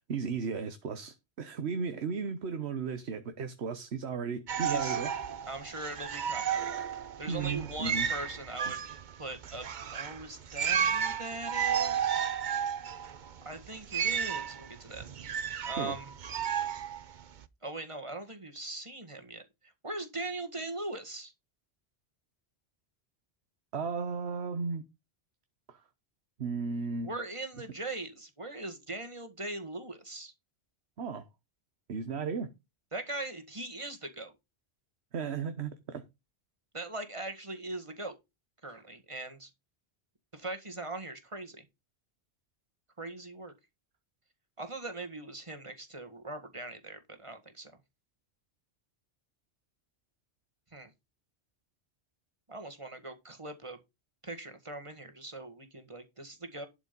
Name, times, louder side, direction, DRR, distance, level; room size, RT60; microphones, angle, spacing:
voice 1, 0.1-5.1 7.3-8.1 15.8-15.9 23.7-24.8 25.7-25.8 26.4-27.1 31.0-31.2 31.9-32.5 35.1-36.0, right 5 dB, 85° right, 1.3 m, -35 dB
sound 1, 4.5-17.5, right 8 dB, 50° right, 0.8 m, -33 dB
voice 2, 4.6-5.0 5.5-6.7 7.2-12.3 13.4-15.0 15.7-16.1 17.6-21.3 27.0-30.3 32.9-34.3 36.7-38.2 38.6-39.5 40.3-41.6 43.0-43.5 44.6-47.7 50.7-50.9 52.5-53.8 54.2-56.7, right 2 dB, 30° right, 1.8 m, -40 dB
12.0 x 5.0 x 5.2 m
omnidirectional pair, 1.1 m